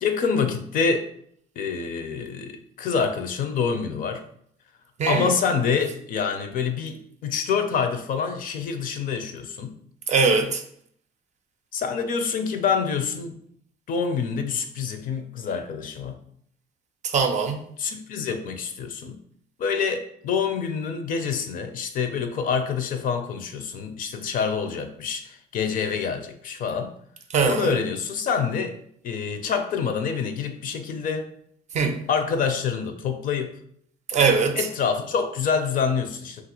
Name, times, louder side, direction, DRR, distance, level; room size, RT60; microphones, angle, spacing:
voice 1, 0.0-1.1 1.6-4.2 5.1-9.7 11.7-13.4 13.9-16.2 17.8-19.2 19.6-26.9 27.4-28.8 29.0-31.3 32.1-33.6 34.5-36.4, left 6 dB, 55° left, 0.4 m, -26 dB
voice 2, 10.1-10.6 17.0-17.6 27.3-27.7 31.7-32.0 34.1-34.6, right 5 dB, 45° right, 0.5 m, -21 dB
2.8 x 2.4 x 2.9 m
cardioid pair, 110°, 17 cm